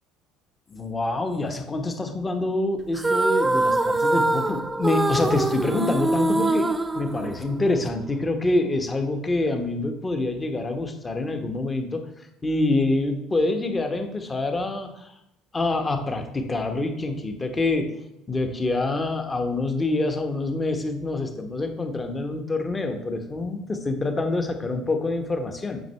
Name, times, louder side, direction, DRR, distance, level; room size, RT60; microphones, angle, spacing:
voice 1, 0.7-15.1 15.5-17.9 18.3-25.8, left 2 dB, 20° left, 6 dB, 1.1 m, -26 dB
sound 1, 2.9-7.8, right 2 dB, 15° right, 0.5 m, -24 dB
9.1 x 6.0 x 3.4 m, 0.82 s
figure-of-eight pair, 60°, 0 cm